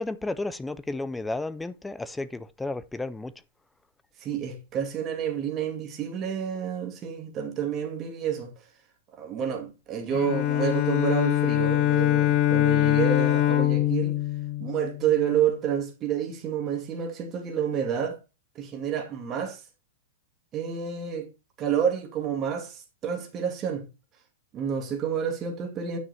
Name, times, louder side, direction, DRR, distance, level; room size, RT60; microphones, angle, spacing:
voice 1, 0.0-3.3, left 2 dB, 5° left, 0.5 m, -32 dB
voice 2, 4.2-8.5 9.2-14.2 14.6-18.2 18.6-19.6 20.5-21.3 21.6-23.8 24.5-26.0, right 8 dB, 25° right, 2.3 m, -29 dB
Bowed string instrument, 10.1-15.3, left 13 dB, 30° left, 1.1 m, -23 dB
9.5 x 6.1 x 4.3 m
supercardioid pair, 160°, 0 cm